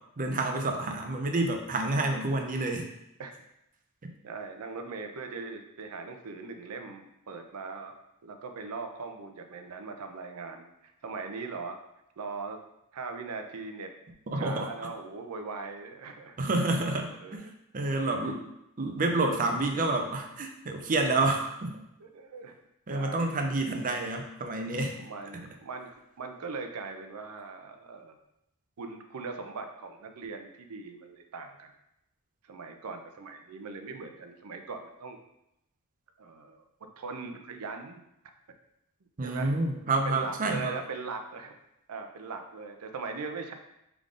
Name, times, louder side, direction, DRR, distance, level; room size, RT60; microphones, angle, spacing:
voice 1, 0.2-2.9 4.0-4.1 14.3-14.7 16.4-17.5 17.7-18.4 18.8-21.7 22.9-25.0 39.2-40.8, right 2 dB, 35° right, 3 dB, 0.6 m, -29 dB
voice 2, 4.2-11.8 12.2-12.6 12.9-13.9 14.4-16.4 17.2-17.5 18.2-18.3 22.0-22.5 22.9-23.3 25.0-25.9 26.2-28.2 28.8-31.7 32.4-35.2 36.2-36.6 37.0-38.0 39.2-39.5 40.0-41.5 41.9-43.5, right 4 dB, 80° right, 6 dB, 0.5 m, -40 dB
3.6 x 3.5 x 3.7 m, 0.84 s
head